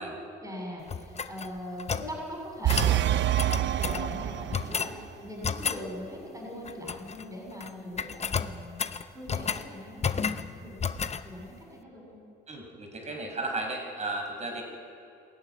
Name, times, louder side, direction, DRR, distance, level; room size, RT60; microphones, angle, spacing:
voice 1, 0.0-8.8 9.1-12.2, equal, 15° right, -2 dB, 6.7 m, -41 dB
sound 1, 0.9-2.1 2.7-3.0 3.4-4.0 4.5-5.0 5.4-5.8 6.6-7.2 7.5-7.7 8.0-9.7 10.0-10.5 10.8-11.2, left 6 dB, 35° left, 0.8 m, -31 dB
sound 2, 2.6-4.9, right 12 dB, 65° right, 0.6 m, -26 dB
voice 2, 12.5-14.6, right 2 dB, 35° right, 2 dB, 5.2 m, -34 dB
19.5 x 14.0 x 9.8 m, 2.5 s
cardioid pair, 90°, 20 cm